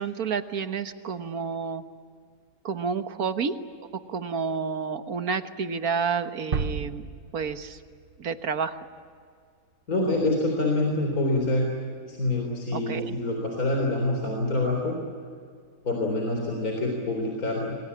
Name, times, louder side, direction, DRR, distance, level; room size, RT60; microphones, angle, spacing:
voice 1, 0.0-1.8 2.6-3.5 3.9-7.1 7.3-7.8 8.2-8.9 12.7-13.2, right 6 dB, 80° right, 9 dB, 1.7 m, -30 dB
sound 1, 6.5-8.4, right 5 dB, 45° right, 1.0 m, -32 dB
voice 2, 9.9-11.7 12.1-15.0 15.8-17.8, left 2 dB, 75° left, 1 dB, 4.3 m, -26 dB
28.0 x 22.5 x 8.6 m, 2.2 s
omnidirectional pair, 1.6 m